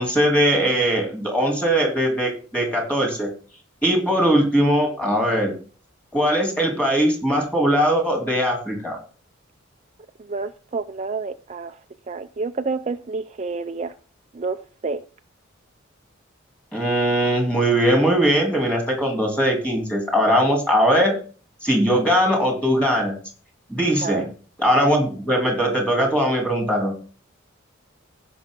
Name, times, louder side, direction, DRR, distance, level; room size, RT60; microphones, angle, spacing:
voice 1, 0.0-3.3 3.8-5.5 6.1-9.0 16.7-21.1 21.6-23.2 23.7-24.3 24.6-26.9, equal, 5° left, 1 dB, 3.0 m, -20 dB
voice 2, 10.3-11.8 12.1-13.9 14.3-14.6 14.8-15.0 24.0-24.3, right 4 dB, 35° right, 8 dB, 0.4 m, -28 dB
16.0 x 5.6 x 3.8 m, 0.39 s
head